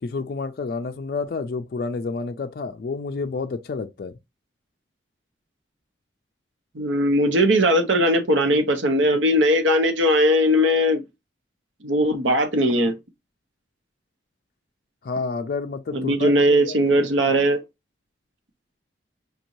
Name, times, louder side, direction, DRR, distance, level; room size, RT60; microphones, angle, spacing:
voice 1, 0.0-4.1 15.0-16.8, left 4 dB, 50° left, 0.3 m, -29 dB
voice 2, 6.7-11.0 11.8-12.9 15.9-17.6, equal, 90° right, 0.9 m, -19 dB
5.2 x 2.6 x 2.9 m
head